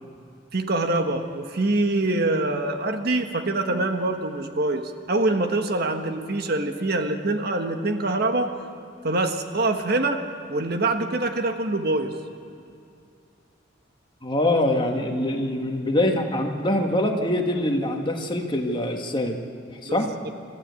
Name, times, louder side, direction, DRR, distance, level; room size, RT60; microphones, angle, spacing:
voice 1, 0.5-8.5 9.0-10.2 10.5-12.1 19.8-20.0, right 2 dB, 55° right, 6 dB, 1.4 m, -24 dB
voice 2, 14.2-19.4 19.8-20.1, left 1 dB, 25° left, 3 dB, 1.7 m, -24 dB
27.5 x 14.0 x 8.4 m, 2.5 s
head